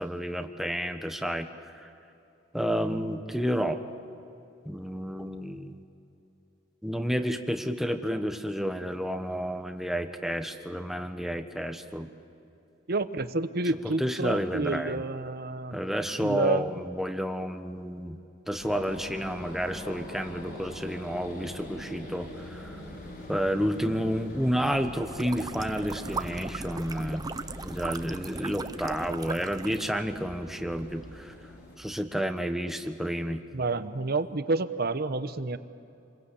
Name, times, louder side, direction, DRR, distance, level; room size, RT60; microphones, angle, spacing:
voice 1, 0.0-1.9 2.5-3.8 4.6-5.8 6.8-12.1 13.8-15.0 15.7-18.2 18.5-22.8 23.3-27.2 27.6-31.3 31.8-33.4, equal, ahead, 6 dB, 1.3 m, -30 dB
voice 2, 12.9-15.8 16.2-16.7 33.5-35.6, right 2 dB, 55° right, 11 dB, 1.0 m, -29 dB
sound 1, 18.6-31.8, equal, 55° left, 5.1 m, -43 dB
sound 2, 25.1-29.9, right 3 dB, 20° right, 0.6 m, -38 dB
28.0 x 22.0 x 8.5 m, 2.8 s
head